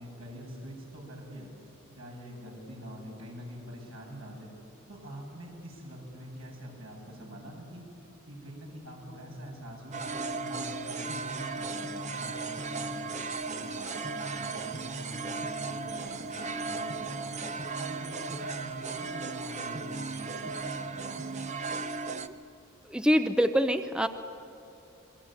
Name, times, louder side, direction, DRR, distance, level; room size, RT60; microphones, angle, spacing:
voice 1, 0.0-1.5 2.0-4.5 4.9-7.8 8.3-10.1 10.4-13.1 13.5-17.4 17.8-21.4, equal, 75° right, -1 dB, 7.8 m, -45 dB
sound 1, 9.9-22.3, right 4 dB, 35° right, 0.8 m, -36 dB
voice 2, 22.9-24.1, equal, 5° right, 8 dB, 0.6 m, -24 dB
28.0 x 22.0 x 9.0 m, 2.9 s
head